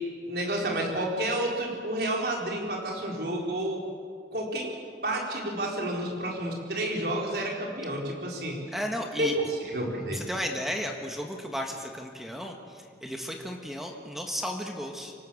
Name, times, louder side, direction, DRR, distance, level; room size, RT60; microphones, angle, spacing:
voice 1, 0.2-3.8 4.3-4.8 5.0-8.6 9.2-10.2, right 1 dB, 60° right, -1 dB, 4.8 m, -30 dB
voice 2, 8.7-9.3 10.1-12.5 13.0-15.1, equal, ahead, 2 dB, 1.7 m, -34 dB
25.5 x 18.0 x 7.4 m, 2.2 s
head